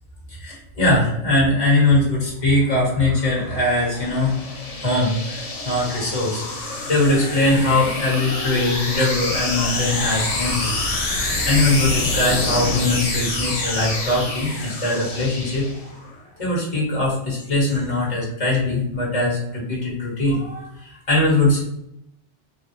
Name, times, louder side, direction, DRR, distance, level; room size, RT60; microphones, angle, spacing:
voice 1, 0.3-4.5 4.8-10.7 11.5-15.6 16.4-21.6, left 2 dB, 30° left, -5 dB, 1.4 m, -21 dB
sound 1, 2.6-16.1, left 2 dB, 70° left, 1.2 m, -27 dB
3.4 x 2.3 x 2.9 m, 0.79 s
omnidirectional pair, 1.2 m